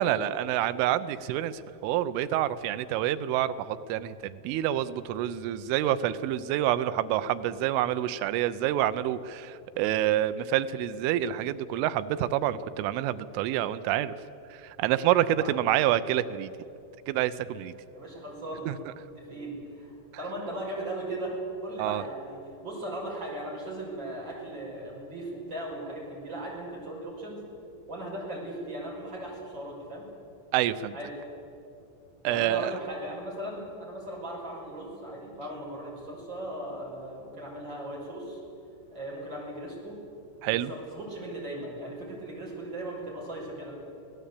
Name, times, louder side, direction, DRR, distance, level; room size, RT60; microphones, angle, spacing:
voice 1, 0.0-14.1 14.6-16.5 17.1-17.8 18.7-18.8 21.8-22.0 30.5-31.0 32.2-32.8 40.4-40.7, right 12 dB, 85° right, 13 dB, 3.2 m, -27 dB
voice 2, 15.3-15.7 17.9-18.7 19.0-22.4 22.6-27.4 27.9-30.0 30.9-31.1 32.2-38.4 38.9-40.0 40.5-43.8, right 1 dB, 20° right, -2 dB, 6.4 m, -38 dB
26.0 x 17.5 x 8.4 m, 2.7 s
omnidirectional pair, 5.6 m